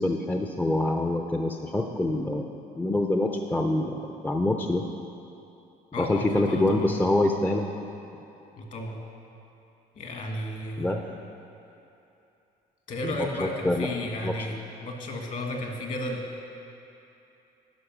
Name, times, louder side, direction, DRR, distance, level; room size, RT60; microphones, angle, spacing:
voice 1, 0.0-2.5 2.8-4.8 6.0-7.7 10.8-11.0 13.0-13.9 14.2-14.3, left 2 dB, 10° left, 3 dB, 0.5 m, -26 dB
voice 2, 5.9-6.9 8.6-9.0 9.9-11.0 12.9-16.3, left 1 dB, 50° left, 1 dB, 1.6 m, -33 dB
11.5 x 5.2 x 6.1 m, 2.8 s
cardioid pair, 110°, 17 cm